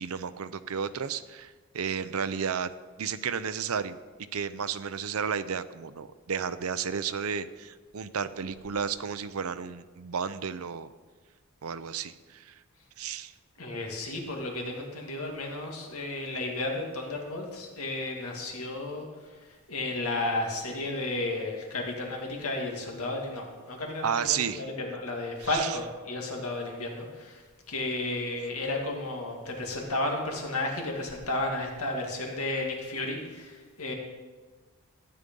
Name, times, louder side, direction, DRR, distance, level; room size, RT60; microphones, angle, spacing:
voice 1, 0.0-2.7 3.0-4.0 4.3-10.9 11.6-12.6 13.0-13.3 24.0-24.7 25.5-25.8, right 7 dB, 80° right, 12 dB, 0.6 m, -32 dB
voice 2, 13.6-19.1 19.7-27.4 27.7-33.9, left 2 dB, 85° left, 1 dB, 2.2 m, -33 dB
13.5 x 9.8 x 5.3 m, 1.4 s
head